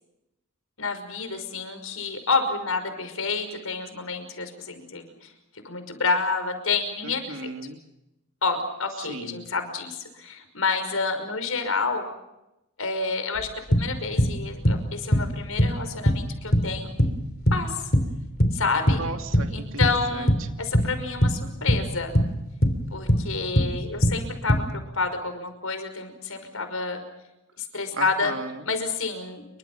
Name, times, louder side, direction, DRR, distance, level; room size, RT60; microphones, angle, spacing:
voice 1, 0.8-5.3 5.6-7.5 8.4-12.1 12.8-16.9 17.5-17.9 18.5-19.1 19.5-20.3 20.6-22.1 22.9-27.0 27.6-28.4 28.7-29.5, left 4 dB, 80° left, 9 dB, 5.7 m, -29 dB
voice 2, 7.0-7.8 9.0-9.5 19.0-19.8 20.1-20.3 27.9-28.7, right 3 dB, 70° right, 5 dB, 2.5 m, -36 dB
sound 1, 13.4-13.5 13.7-14.4 14.6-15.3 15.6-15.8 16.1-16.3 16.5-17.2 17.5-18.6 18.9-19.6 19.8-20.4 20.7-21.0 21.2-21.9 22.1-22.8 23.1-23.3 23.6-23.8 24.0-24.6, equal, 45° left, 3.2 m, -21 dB
29.0 x 24.5 x 5.8 m, 0.91 s
head